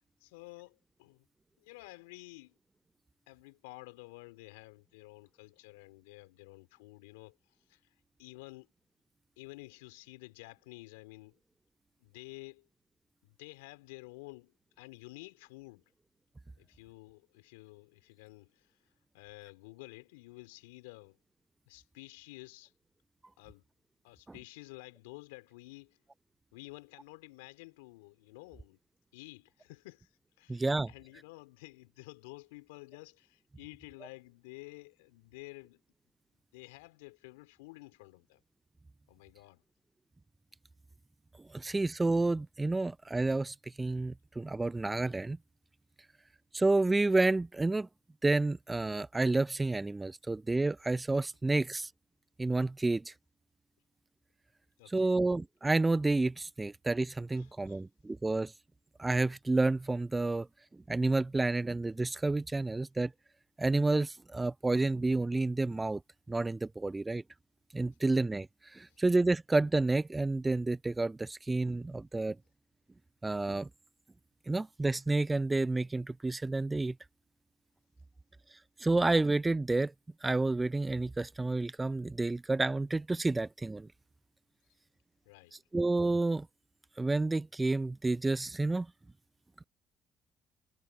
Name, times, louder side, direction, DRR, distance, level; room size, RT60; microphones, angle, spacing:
voice 1, 0.2-1.3 1.6-2.6 3.3-8.7 9.4-11.4 12.0-12.7 13.2-15.8 16.6-21.2 21.7-22.7 23.4-23.6 24.0-26.0 26.5-28.8 29.1-35.8 36.5-38.4 39.1-39.6 54.8-55.2 57.3-57.8 68.9-69.0 84.6-84.8 85.3-85.6, left 24 dB, 80° left, 3.8 m, -51 dB
voice 2, 30.5-30.9 41.5-45.4 46.5-47.9 48.2-51.9 52.4-53.1 54.9-58.5 59.0-60.5 60.9-63.1 63.6-66.0 66.3-67.2 67.7-68.5 68.7-72.4 73.2-73.7 74.5-77.0 78.8-79.9 80.2-83.9 85.7-86.5 87.0-88.9, right 2 dB, 20° right, 0.6 m, -30 dB
hypercardioid pair, 50°, 0 cm